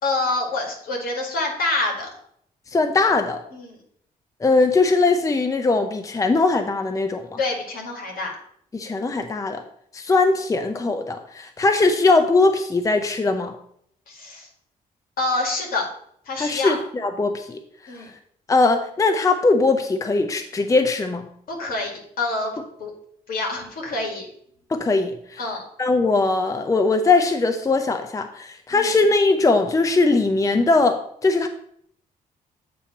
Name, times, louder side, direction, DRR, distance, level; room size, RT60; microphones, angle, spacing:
voice 1, 0.0-2.1 3.5-3.8 7.4-8.3 14.1-14.5 15.2-15.9 16.3-16.8 17.9-18.1 21.5-21.9 22.2-22.9 23.3-24.3 25.4-25.6 28.7-28.9, left 2 dB, 70° left, 1 dB, 2.0 m, -26 dB
voice 2, 2.7-3.4 4.4-7.4 8.7-9.6 9.9-13.5 16.4-17.6 18.5-21.3 24.7-25.4 25.8-31.5, left 3 dB, 20° left, 7 dB, 0.5 m, -20 dB
8.5 x 2.9 x 5.8 m, 0.69 s
cardioid pair, 80°, 15 cm